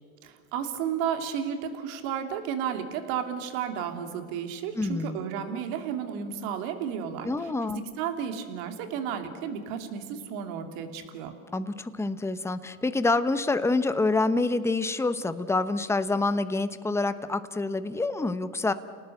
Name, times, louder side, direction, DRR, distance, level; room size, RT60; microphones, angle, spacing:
voice 1, 0.2-7.3 7.7-11.3, right 8 dB, 70° right, 6 dB, 3.1 m, -33 dB
voice 2, 4.8-5.2 7.2-7.8 11.5-18.7, left 3 dB, 5° left, 12 dB, 1.0 m, -27 dB
29.5 x 19.0 x 8.0 m, 2.2 s
supercardioid pair, 105°, 42 cm